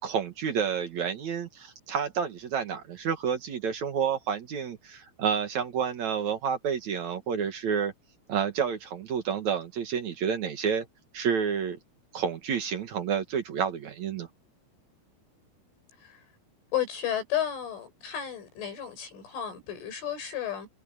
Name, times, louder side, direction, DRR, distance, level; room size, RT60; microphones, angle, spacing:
voice 1, 0.0-7.9 8.3-10.9 11.1-11.8 12.1-14.3, right 7 dB, 65° right, 1.8 m, -29 dB
voice 2, 16.7-20.7, left 10 dB, 70° left, 8.8 m, -33 dB
omnidirectional pair, 5.7 m